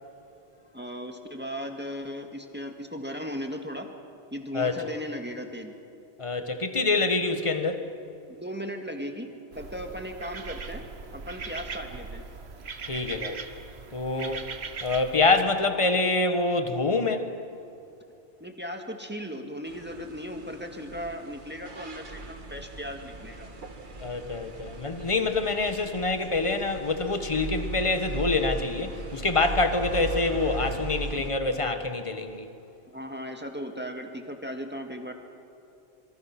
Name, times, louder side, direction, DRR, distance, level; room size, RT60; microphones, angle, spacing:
voice 1, 0.7-3.9 4.3-5.8 8.3-9.3 9.6-10.8 11.1-12.2 18.4-23.5 32.9-35.1, equal, 10° right, 4 dB, 1.9 m, -37 dB
voice 2, 6.2-7.9 12.9-13.4 13.9-14.5 14.8-17.3 24.0-32.5, left 3 dB, 30° left, 7 dB, 1.6 m, -26 dB
sound 1, 9.5-15.4, right 4 dB, 85° right, 1.5 m, -40 dB
sound 2, 19.6-31.3, right 2 dB, 50° right, 1.7 m, -38 dB
25.5 x 25.0 x 6.1 m, 2.6 s
omnidirectional pair, 1.0 m